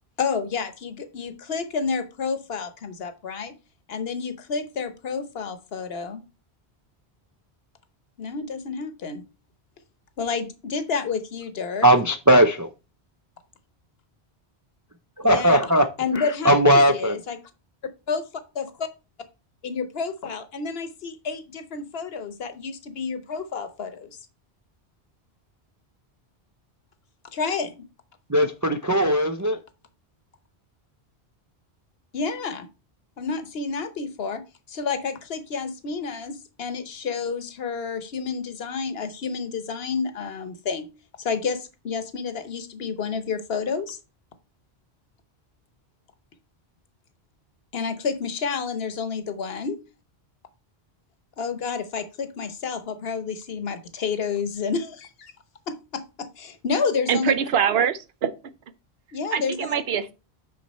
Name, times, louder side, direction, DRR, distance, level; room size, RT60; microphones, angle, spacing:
voice 1, 0.2-3.5 3.9-6.2 8.2-9.2 10.2-11.9 15.2-15.7 16.0-17.4 18.1-18.3 18.5-18.9 19.6-24.2 27.3-27.8 32.1-32.7 33.2-34.4 34.7-40.9 41.2-44.0 47.7-49.8 51.4-55.3 55.7-57.3 59.1-59.7, left 5 dB, 70° left, 1.1 m, -30 dB
voice 2, 11.8-12.7 15.2-15.9 16.1-17.1 28.3-29.6, right 1 dB, 30° right, 0.4 m, -18 dB
voice 3, 57.1-58.3 59.3-60.1, right 8 dB, 70° right, 0.9 m, -23 dB
6.1 x 5.6 x 4.1 m
omnidirectional pair, 1.1 m